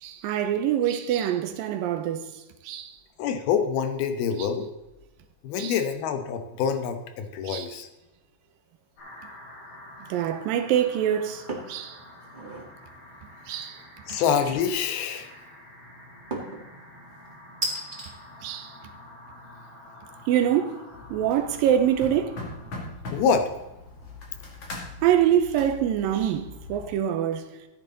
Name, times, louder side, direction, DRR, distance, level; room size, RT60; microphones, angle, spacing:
voice 1, 0.0-3.0 4.4-4.5 5.6-5.8 7.4-7.7 10.1-12.0 13.5-13.8 14.1-14.2 18.4-18.8 20.3-22.4 25.0-27.6, right 10 dB, 80° right, 2.3 m, -25 dB
voice 2, 3.2-4.7 5.4-7.9 14.1-15.3 23.1-23.5, left 7 dB, 75° left, 2.9 m, -26 dB
sound 1, 9.0-22.7, left 1 dB, 60° left, 5.0 m, -48 dB
sound 2, 11.5-11.8 12.2-12.7 14.4-15.0 16.3-16.7 17.6-18.1, right 1 dB, 30° right, 0.8 m, -33 dB
sound 3, 20.9-26.9, left 2 dB, 40° left, 2.8 m, -41 dB
14.0 x 8.9 x 4.0 m
omnidirectional pair, 4.5 m